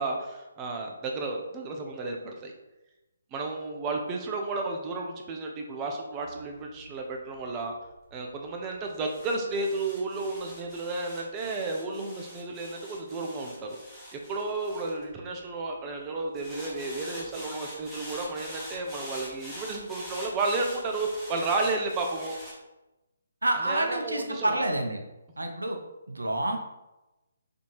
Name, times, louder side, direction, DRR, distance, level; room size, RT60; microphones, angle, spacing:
voice 1, 0.0-2.5 3.3-7.7 8.1-14.0 14.3-22.4 23.6-24.6, right 3 dB, 20° right, 2 dB, 0.4 m, -32 dB
sound 1, 6.2-15.7 16.4-22.5, equal, ahead, 1.0 m, -45 dB
voice 2, 23.4-25.0 25.4-25.8 26.1-26.6, right 1 dB, 80° right, 4 dB, 0.5 m, -28 dB
4.2 x 2.7 x 3.1 m, 1.0 s
figure-of-eight pair, 140°, 0 cm